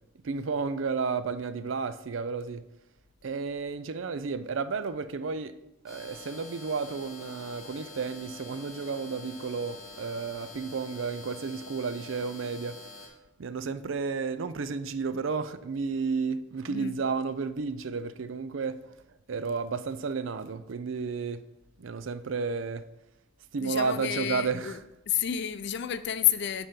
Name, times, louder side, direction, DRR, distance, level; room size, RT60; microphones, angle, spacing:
voice 1, 0.2-2.6 3.2-5.5 5.8-12.8 13.4-18.9 19.3-21.4 21.8-22.8 23.5-24.8, right 5 dB, 75° right, 0.5 m, -32 dB
sound 1, 5.9-13.1, left 2 dB, ahead, 1.9 m, -46 dB
voice 2, 23.6-24.8 25.1-26.7, left 10 dB, 60° left, 0.5 m, -29 dB
8.8 x 4.3 x 5.2 m
head